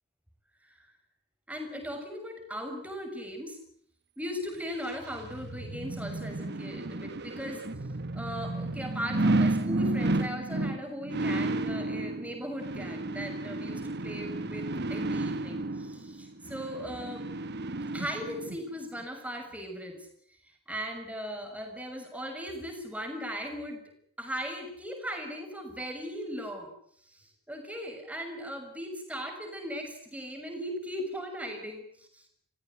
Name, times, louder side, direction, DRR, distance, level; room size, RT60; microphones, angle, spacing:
voice 1, 0.6-0.9 1.5-3.6 4.2-7.6 8.1-17.3 17.9-20.1 20.4-23.8 24.2-26.7 27.0-31.8, equal, 5° right, 4 dB, 6.6 m, -38 dB
sound 1, 4.7-18.6 19.0-19.1, right 2 dB, 50° right, 1.4 m, -32 dB
29.5 x 17.0 x 9.6 m, 0.66 s
head